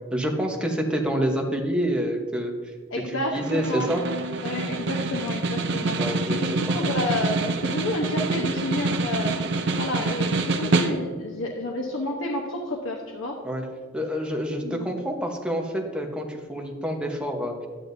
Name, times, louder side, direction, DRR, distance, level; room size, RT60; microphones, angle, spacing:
voice 1, 0.1-2.7 3.1-4.0 6.0-6.7 13.4-13.7 13.9-17.7, equal, 5° right, 1 dB, 1.0 m, -27 dB
voice 2, 2.9-3.9 4.4-9.5 9.8-13.3 14.6-14.9, left 1 dB, 90° left, 0 dB, 1.0 m, -30 dB
Snare drum, 3.4-11.3, right 3 dB, 60° right, 0.6 m, -26 dB
11.5 x 9.4 x 2.7 m, 1.5 s
head